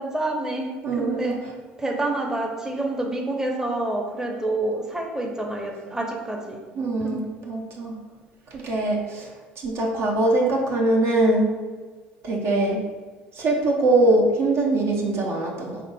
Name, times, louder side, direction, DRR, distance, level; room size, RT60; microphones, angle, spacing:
voice 1, 0.0-1.5 1.8-6.6 7.0-7.1, right 2 dB, 10° right, 0 dB, 0.7 m, -28 dB
voice 2, 0.8-1.4 6.8-8.0 8.5-9.3 9.6-11.5 12.2-12.9 13.4-15.8, right 2 dB, 55° right, -1 dB, 0.7 m, -22 dB
5.1 x 3.4 x 2.2 m, 1.4 s
figure-of-eight pair, 60°, 5 cm